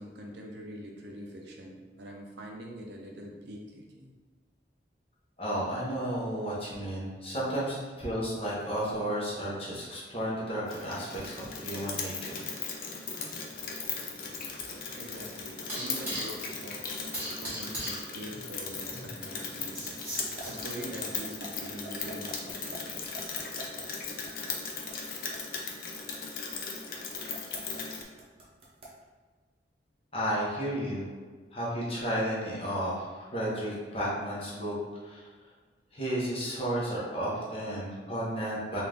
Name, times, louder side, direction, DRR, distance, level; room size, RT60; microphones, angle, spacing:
voice 1, 0.0-4.1 11.1-11.5 14.9-16.9 17.4-19.9 20.4-23.0, right 1 dB, 70° right, 1 dB, 0.6 m, -44 dB
voice 2, 5.4-12.3 12.7-12.9 30.1-31.0 31.5-34.7 35.0-35.3 35.9-38.8, equal, 35° left, -6 dB, 1.0 m, -33 dB
Rain, 10.7-28.0, left 5 dB, 50° left, 0.5 m, -38 dB
sound 1, 13.2-21.1, equal, 10° right, 1.3 m, -41 dB
sound 2, 20.2-29.0, right 2 dB, 35° right, 0.8 m, -46 dB
3.8 x 2.5 x 3.4 m, 1.5 s
head